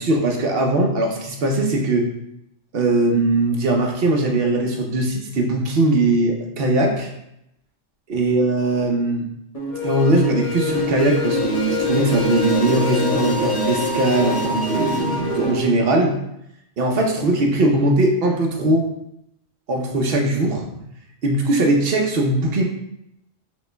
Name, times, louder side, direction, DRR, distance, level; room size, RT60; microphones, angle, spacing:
voice 1, 0.0-2.1 2.7-7.1 8.1-9.3 9.8-16.2 16.8-18.8 19.7-20.6 21.2-22.6, right 2 dB, 55° right, 1 dB, 0.9 m, -20 dB
sound 1, 9.5-15.6, left 1 dB, 30° left, 1.2 m, -24 dB
5.9 x 3.2 x 2.2 m, 0.80 s
omnidirectional pair, 1.3 m